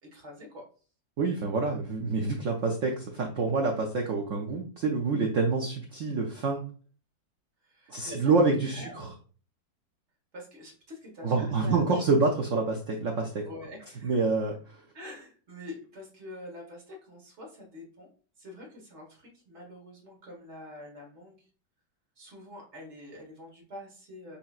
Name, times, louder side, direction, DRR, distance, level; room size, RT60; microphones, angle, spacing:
voice 1, 0.0-0.7 7.6-9.0 10.3-12.2 13.4-14.2 14.9-18.1 18.4-21.5 22.2-24.4, left 1 dB, 40° right, 0 dB, 1.5 m, -45 dB
voice 2, 1.2-6.6 7.9-9.1 11.2-13.4 14.0-14.5, right 3 dB, 85° right, 2 dB, 0.6 m, -27 dB
6.6 x 2.8 x 2.4 m, 0.40 s
omnidirectional pair, 2.1 m